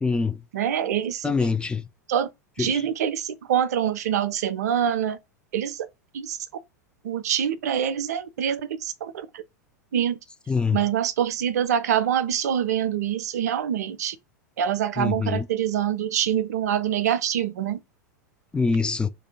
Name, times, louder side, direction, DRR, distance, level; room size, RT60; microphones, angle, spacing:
voice 1, 0.0-0.4 1.2-1.8 2.7-2.8 10.5-10.8 15.0-15.4 18.5-19.1, left 4 dB, 10° left, 0.4 m, -24 dB
voice 2, 0.5-1.3 2.1-2.3 2.6-5.2 5.5-5.9 6.1-6.4 7.0-9.4 9.9-10.2 10.7-14.2 14.6-17.8, right 9 dB, 65° right, 0.5 m, -25 dB
2.8 x 2.6 x 4.1 m
figure-of-eight pair, 90°, 9 cm